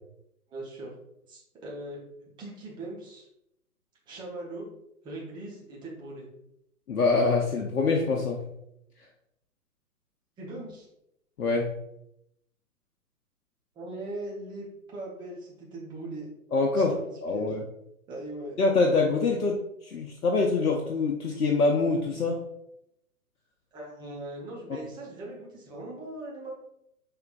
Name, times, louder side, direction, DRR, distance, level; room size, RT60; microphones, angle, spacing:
voice 1, 0.5-0.9 1.3-3.3 4.1-4.7 5.0-6.3 10.4-10.9 13.7-16.3 16.7-17.0 17.3-17.6 18.1-18.6 23.7-26.5, right 2 dB, 10° right, -4 dB, 0.8 m, -40 dB
voice 2, 6.9-8.4 11.4-11.7 16.5-16.9 17.2-17.6 18.6-22.4, left 3 dB, 80° left, 1 dB, 0.8 m, -25 dB
5.7 x 3.4 x 2.3 m, 0.80 s
figure-of-eight pair, 125°, 45 cm